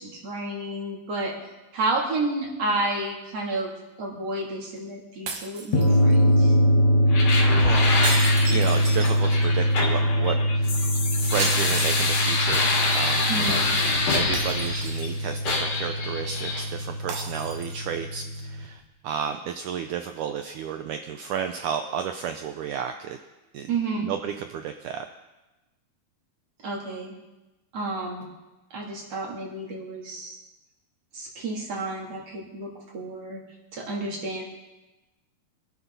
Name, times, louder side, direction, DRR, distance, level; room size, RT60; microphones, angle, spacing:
voice 1, 0.0-1.4 1.7-3.7 4.0-6.5 13.3-13.7 23.7-24.1 26.6-27.2 27.7-28.3 28.7-30.4 31.1-33.4 33.7-34.4, right 2 dB, 40° right, -2 dB, 3.8 m, -31 dB
sound 1, 5.3-6.3 8.0-9.6 11.4-12.6 12.9-13.0 14.3-15.4 17.1-18.0, right 4 dB, 60° right, 2.7 m, -35 dB
sound 2, 5.7-18.6, equal, 85° left, 0.9 m, -23 dB
sound 3, 7.1-15.1 15.4-16.7, left 3 dB, 55° left, 4.0 m, -26 dB
voice 2, 7.6-7.9 8.5-10.8 11.2-13.6 14.1-23.2 23.5-23.7 24.0-25.1, right 8 dB, 90° right, 7 dB, 1.7 m, -32 dB
25.0 x 12.0 x 4.1 m, 1.1 s
omnidirectional pair, 4.4 m